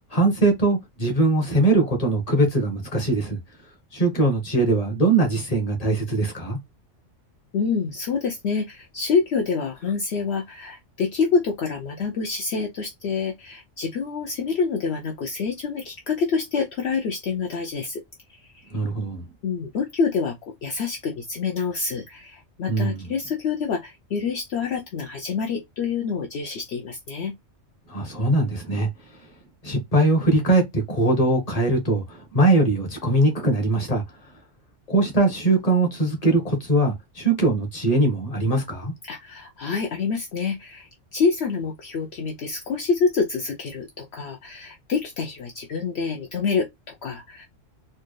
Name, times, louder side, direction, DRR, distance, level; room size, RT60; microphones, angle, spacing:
voice 1, 0.1-3.4 3.9-6.6 18.7-19.2 22.7-23.1 27.9-28.9 29.6-34.0 34.9-38.9, right 2 dB, 35° left, 1.3 m, -21 dB
voice 2, 7.5-18.0 18.3-18.8 19.4-27.3 39.0-47.5, left 5 dB, 65° left, 0.9 m, -27 dB
4.4 x 2.3 x 3.1 m
omnidirectional pair, 1.2 m